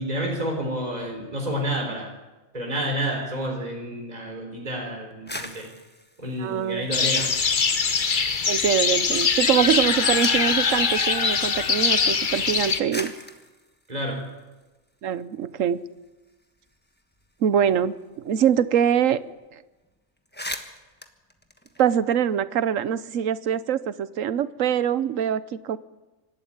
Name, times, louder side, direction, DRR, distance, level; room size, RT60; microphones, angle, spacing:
voice 1, 0.0-2.1 2.5-5.7 6.2-7.3 13.9-14.2, equal, 30° right, 0 dB, 4.1 m, -29 dB
sound 1, 5.1-7.7 8.0-8.7 9.5-10.6 11.6-11.7 12.5-12.6 12.9-15.2 15.6-15.7 15.9-18.5 18.8-18.9 19.2-19.5 19.8-19.9 20.2-22.4, left 1 dB, 10° left, 1.3 m, -40 dB
voice 2, 6.4-6.9 8.5-13.1 15.0-15.8 17.4-19.2 19.5-19.6 21.8-25.8, right 9 dB, 85° right, 16 dB, 1.2 m, -24 dB
sound 2, 6.9-12.8, left 5 dB, 40° left, 1.1 m, -22 dB
26.0 x 12.5 x 8.8 m, 1.1 s
omnidirectional pair, 1.3 m